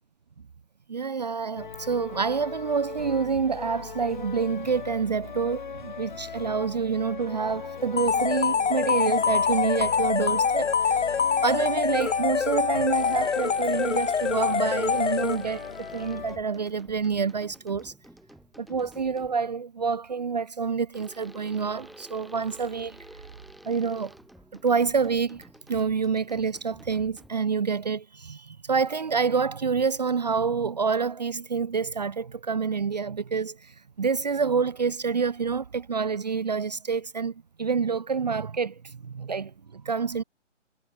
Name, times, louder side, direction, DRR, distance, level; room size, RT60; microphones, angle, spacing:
voice 1, 0.9-11.0 11.4-17.9 18.6-23.0 23.6-24.1 24.6-40.2, right 5 dB, 35° right, 1.0 m, -27 dB
sound 1, 1.6-16.4, left 6 dB, 40° left, 0.9 m, -39 dB
sound 2, 8.0-15.7, left 6 dB, 70° left, 1.1 m, -25 dB
sound 3, 12.9-19.5 20.9-27.6, right 1 dB, ahead, 0.6 m, -50 dB
hypercardioid pair, 170°, 37 cm